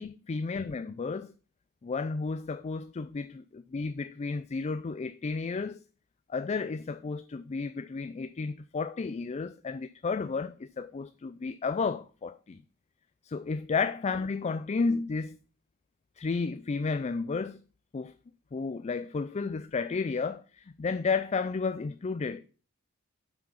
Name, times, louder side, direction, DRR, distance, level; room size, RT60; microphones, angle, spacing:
voice 1, 0.0-1.3 1.8-5.8 6.3-12.6 13.2-15.4 16.2-17.6 17.9-18.1 18.5-22.4, left 4 dB, 30° left, 0.3 m, -32 dB
7.8 x 6.0 x 5.7 m
head